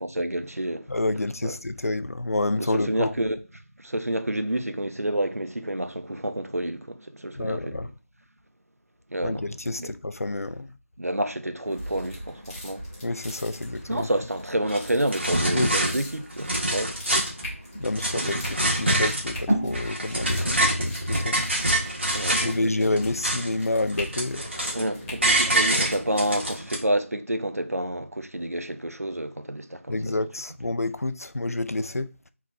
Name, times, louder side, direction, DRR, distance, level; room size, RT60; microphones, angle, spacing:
voice 1, 0.0-1.0 1.4-1.6 2.6-3.4 3.8-7.9 9.1-9.9 11.0-12.8 13.9-17.0 18.1-18.4 20.4-20.7 22.1-22.6 24.7-30.2, right 1 dB, 90° right, 0.7 m, -29 dB
voice 2, 0.9-3.1 7.4-7.9 9.2-10.7 13.0-14.1 15.5-15.7 17.8-21.5 22.3-24.8 29.9-32.1, left 2 dB, 80° left, 0.4 m, -28 dB
sound 1, 11.6-26.5, equal, ahead, 0.6 m, -37 dB
sound 2, 14.7-14.8 15.1-15.9 16.3-17.4 17.8-19.4 19.7-22.5 22.9-23.6 23.9-24.9 25.2-26.8, right 1 dB, 50° right, 1.6 m, -25 dB
4.3 x 4.1 x 2.6 m
figure-of-eight pair, 170°, 8 cm